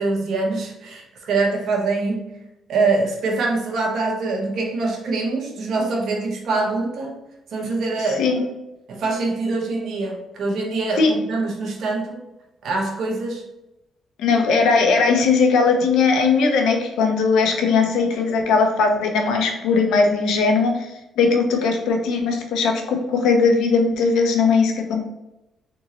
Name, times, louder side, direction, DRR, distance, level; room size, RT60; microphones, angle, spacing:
voice 1, 0.0-2.3 2.7-7.2 7.5-8.3 8.9-12.2 12.6-13.4, right 3 dB, 70° right, 0 dB, 1.1 m, -24 dB
voice 2, 14.2-20.7 21.2-25.0, left 4 dB, 85° left, 3 dB, 0.8 m, -19 dB
3.8 x 3.6 x 3.1 m, 0.93 s
cardioid pair, 90°, 0 cm